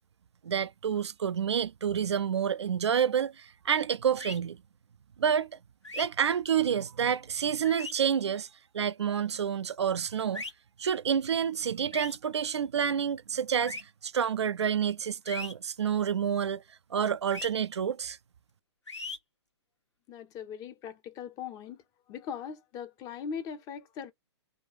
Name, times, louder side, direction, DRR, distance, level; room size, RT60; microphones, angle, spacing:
voice 1, 0.4-4.6 5.2-5.5 5.9-8.5 8.7-10.4 10.8-16.6 16.9-18.2, right 8 dB, 70° right, 0.4 m, -28 dB
sound 1, 4.2-4.4 5.8-6.1 7.6-7.9 10.3-10.5 11.9-12.2 13.6-13.8 15.3-15.5 17.3-17.5 18.9-19.2, left 2 dB, 85° left, 1.3 m, -38 dB
voice 2, 20.1-21.8 22.1-24.1, left 7 dB, 25° left, 0.7 m, -40 dB
3.4 x 2.4 x 4.2 m
figure-of-eight pair, 115°, 15 cm